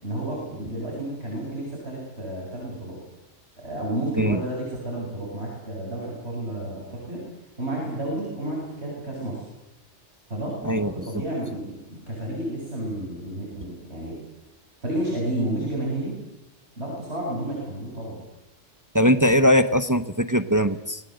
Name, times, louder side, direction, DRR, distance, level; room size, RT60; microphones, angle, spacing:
voice 1, 0.0-3.0 3.6-7.2 7.6-9.5 10.3-14.2 14.8-16.2 16.8-18.2, right 1 dB, 60° right, -3 dB, 8.0 m, -31 dB
voice 2, 18.9-21.0, equal, 15° right, 10 dB, 1.0 m, -20 dB
28.0 x 20.5 x 8.0 m, 0.91 s
omnidirectional pair, 1.2 m